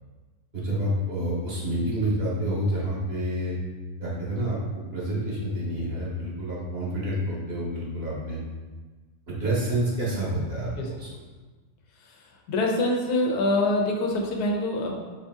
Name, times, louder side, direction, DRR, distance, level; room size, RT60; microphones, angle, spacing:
voice 1, 0.5-3.6 4.0-8.4 9.3-11.1, right 1 dB, 45° right, -6 dB, 1.1 m, -28 dB
voice 2, 12.5-14.9, left 2 dB, 85° left, 1 dB, 1.2 m, -25 dB
4.6 x 2.6 x 3.5 m, 1.3 s
omnidirectional pair, 1.6 m